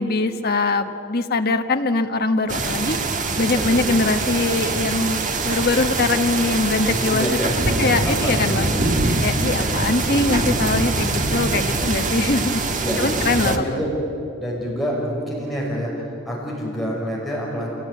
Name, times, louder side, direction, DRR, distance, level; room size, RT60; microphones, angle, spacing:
voice 1, 0.0-3.0 3.4-7.4 7.8-8.8 9.2-12.6 13.0-13.8, left 3 dB, 50° left, 7 dB, 1.3 m, -22 dB
sound 1, 2.5-13.6, right 3 dB, 40° right, 1.6 m, -23 dB
voice 2, 3.6-4.0 6.8-8.6 9.5-9.9 12.8-13.9 14.4-17.7, equal, ahead, -5 dB, 6.1 m, -27 dB
27.0 x 18.0 x 9.6 m, 2.7 s
head